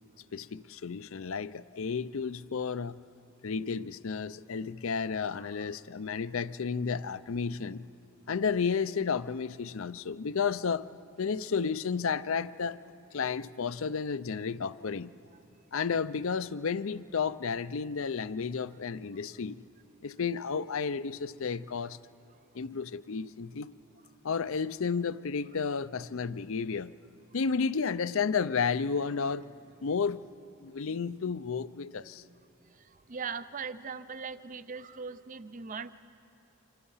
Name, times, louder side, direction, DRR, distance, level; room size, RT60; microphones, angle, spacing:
voice 1, 0.3-3.0 3.4-7.9 8.3-10.9 11.2-12.8 13.1-15.1 15.7-19.6 20.0-22.0 22.5-23.7 24.2-26.9 27.3-29.5 29.8-30.2 30.6-32.2, left 5 dB, 65° left, 15 dB, 0.5 m, -32 dB
voice 2, 33.1-36.0, right 5 dB, 35° right, 13 dB, 0.5 m, -39 dB
26.0 x 25.5 x 5.6 m, 2.6 s
head